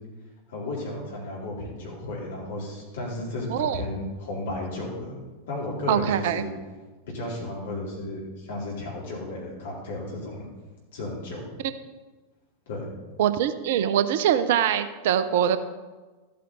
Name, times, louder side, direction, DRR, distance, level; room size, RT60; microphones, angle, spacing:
voice 1, 0.5-5.2 5.5-6.5 7.1-10.5 10.9-11.5 12.7-12.9, left 2 dB, 60° left, -4 dB, 4.0 m, -34 dB
voice 2, 3.5-3.8 5.9-6.5 13.2-15.6, right 10 dB, 55° right, 12 dB, 0.6 m, -23 dB
13.5 x 8.5 x 4.2 m, 1.3 s
figure-of-eight pair, 90°, 0 cm